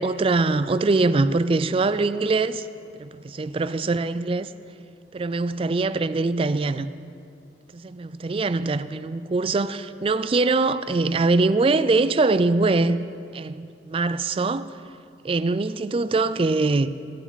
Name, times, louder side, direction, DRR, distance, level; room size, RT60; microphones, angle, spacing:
voice 1, 0.0-2.7 3.0-4.5 5.1-6.9 7.7-13.0 13.3-14.7 15.2-16.9, right 3 dB, 30° right, 0.4 m, -23 dB
19.5 x 13.0 x 4.1 m
head